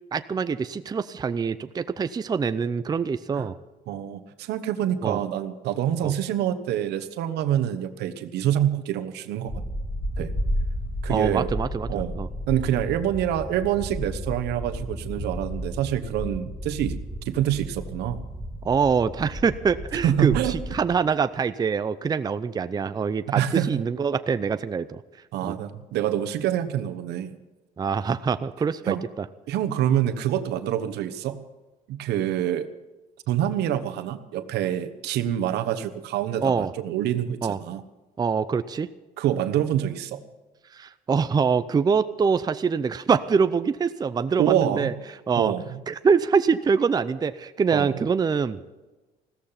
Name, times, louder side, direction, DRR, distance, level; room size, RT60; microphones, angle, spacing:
voice 1, 0.1-3.6 5.0-5.2 6.0-6.1 11.1-12.3 18.6-25.0 25.4-25.6 27.8-29.0 36.4-36.7 37.4-37.6 38.2-38.9 40.7-44.9 45.3-45.5 45.9-48.6, right 5 dB, 25° right, 12 dB, 0.5 m, -24 dB
voice 2, 3.9-9.5 10.2-10.3 11.0-11.5 11.9-12.1 12.5-17.0 17.2-18.2 20.0-20.6 23.3-23.8 25.3-27.4 28.9-29.0 29.5-31.4 31.9-32.7 33.3-37.8 39.2-40.2 44.4-44.9 45.4-45.8 47.7-48.0, right 11 dB, 80° right, 9 dB, 1.2 m, -26 dB
sound 1, 9.5-21.0, equal, 5° left, 2.8 m, -33 dB
15.5 x 13.5 x 5.8 m, 1.1 s
cardioid pair, 110°, 17 cm